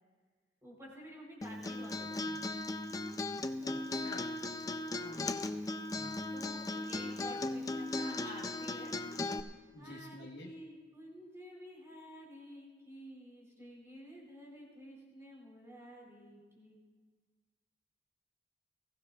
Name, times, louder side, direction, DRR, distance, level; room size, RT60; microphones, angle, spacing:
voice 1, 0.6-2.4 4.8-5.4 6.3-8.9 9.8-16.8, equal, 15° right, -3 dB, 3.7 m, -51 dB
Acoustic guitar, 1.4-9.4, left 2 dB, 20° left, 0.5 m, -37 dB
voice 2, 3.6-4.3 5.9-6.2 9.7-10.5, left 2 dB, 90° left, -3 dB, 1.3 m, -49 dB
21.0 x 15.5 x 2.4 m, 1.4 s
head